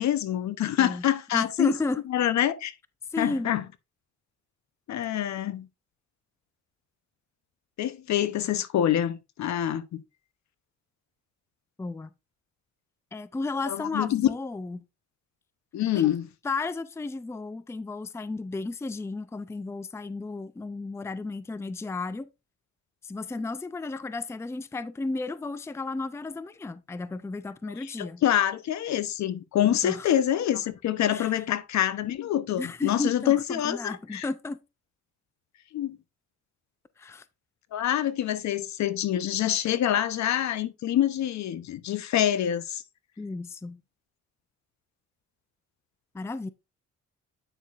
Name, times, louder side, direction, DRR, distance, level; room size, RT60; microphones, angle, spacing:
voice 1, 0.0-1.7 2.1-2.7 3.2-3.6 4.9-5.7 7.8-10.0 13.7-14.3 15.7-16.3 27.8-34.3 35.7-36.0 37.7-42.8, left 11 dB, 65° left, 0.8 m, -26 dB
voice 2, 1.3-2.0 3.1-3.5 11.8-12.1 13.1-14.8 15.9-16.1 16.4-22.3 23.0-28.2 29.6-30.1 31.1-31.3 32.6-34.6 37.0-37.2 43.2-43.8 46.1-46.5, left 3 dB, 10° left, 0.5 m, -33 dB
9.1 x 6.4 x 2.5 m
cardioid pair, 90°, 30 cm